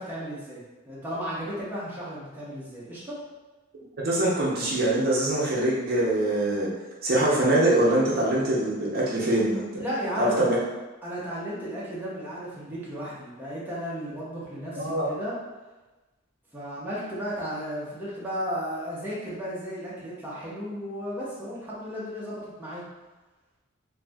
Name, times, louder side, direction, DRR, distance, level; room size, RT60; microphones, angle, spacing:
voice 1, 0.0-3.2 9.7-10.4 11.0-15.4 16.5-22.8, equal, 10° right, -8 dB, 0.6 m, -34 dB
voice 2, 4.0-6.7 7.0-9.7 10.2-10.6 14.8-15.0, right 1 dB, 45° right, -5 dB, 0.6 m, -23 dB
2.6 x 2.4 x 3.3 m, 1.2 s
head